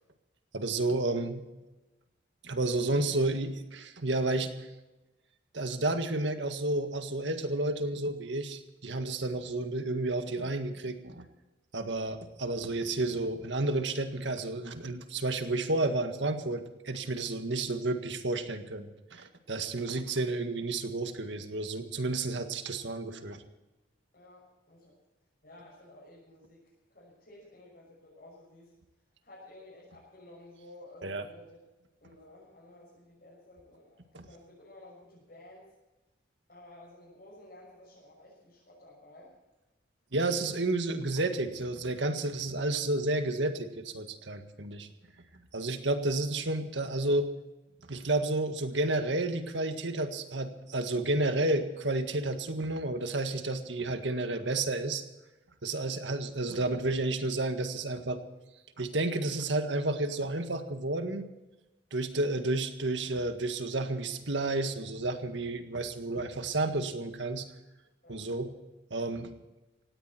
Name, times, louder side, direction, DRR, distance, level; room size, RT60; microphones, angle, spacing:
voice 1, 0.5-1.4 2.4-4.7 5.5-11.3 11.7-23.4 31.0-31.3 34.1-34.3 40.1-44.9 45.5-47.3 47.9-55.0 55.6-58.2 58.8-61.3 61.9-67.5 68.1-68.5 68.9-69.3, right 2 dB, 75° right, 7 dB, 1.8 m, -31 dB
voice 2, 24.1-24.9 25.4-28.7 29.2-31.6 32.0-35.7 36.5-39.3 46.0-46.2 68.0-68.2, left 1 dB, 50° left, -6 dB, 6.6 m, -54 dB
18.0 x 16.5 x 4.4 m, 1.0 s
head